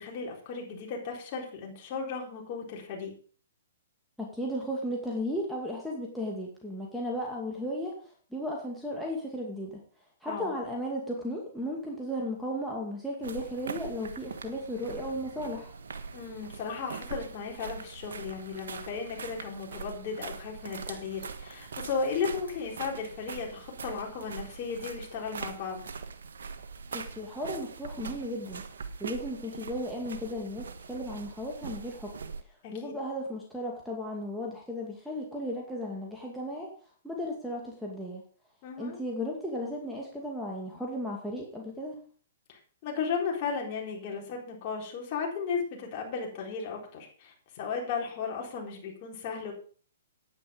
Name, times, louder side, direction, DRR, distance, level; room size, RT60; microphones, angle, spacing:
voice 1, 0.0-3.1 10.3-10.5 16.1-25.8 32.6-32.9 38.6-39.0 42.5-49.5, left 5 dB, 40° left, 0 dB, 4.3 m, -35 dB
voice 2, 4.2-8.0 8.3-9.8 10.2-15.7 26.9-28.6 29.0-32.1 32.7-36.7 37.0-38.2 38.8-42.0, equal, ahead, -4 dB, 2.4 m, -35 dB
sound 1, 13.2-32.4, right 5 dB, 70° right, 1.5 m, -42 dB
9.7 x 9.6 x 5.2 m, 0.43 s
hypercardioid pair, 125°, 0 cm